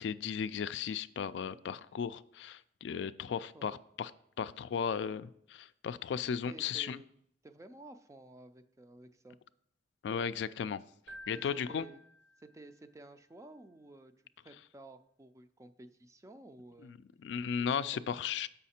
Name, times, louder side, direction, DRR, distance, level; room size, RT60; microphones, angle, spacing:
voice 1, 0.0-4.1 4.4-7.0 10.0-10.8 11.3-11.8 16.8-18.5, left 7 dB, 75° left, 14 dB, 0.3 m, -36 dB
voice 2, 3.3-3.8 6.5-7.1 7.4-9.4 11.3-12.0 12.4-14.1 14.4-17.0 17.6-18.2, right 2 dB, 15° right, 9 dB, 0.4 m, -53 dB
Keyboard (musical), 11.1-12.9, equal, 65° right, 0.7 m, -53 dB
7.2 x 5.6 x 4.2 m, 0.68 s
head